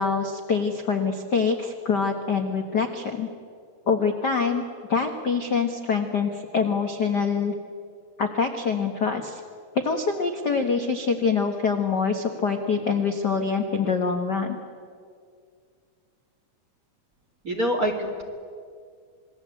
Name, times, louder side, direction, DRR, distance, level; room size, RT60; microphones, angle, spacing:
voice 1, 0.0-3.3 3.9-7.5 8.2-9.4 9.8-14.6, left 5 dB, 55° left, 5 dB, 1.2 m, -25 dB
voice 2, 17.4-18.2, equal, 30° right, 1 dB, 1.8 m, -25 dB
27.0 x 21.0 x 8.3 m, 2.2 s
omnidirectional pair, 3.9 m